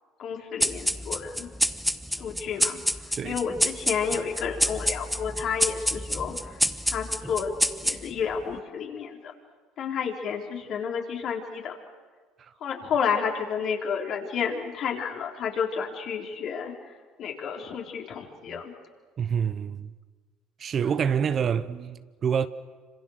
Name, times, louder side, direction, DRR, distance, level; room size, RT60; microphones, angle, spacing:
voice 1, 0.2-1.5 2.1-2.8 3.1-7.5 7.8-9.3 9.8-11.7 12.6-18.7, left 6 dB, 55° left, 4.0 m, -31 dB
sound 1, 0.6-8.3, equal, ahead, 1.1 m, -28 dB
voice 2, 19.2-19.9 20.6-22.5, right 7 dB, 45° right, 1.0 m, -27 dB
26.5 x 26.5 x 6.6 m
hypercardioid pair, 75°, 0 cm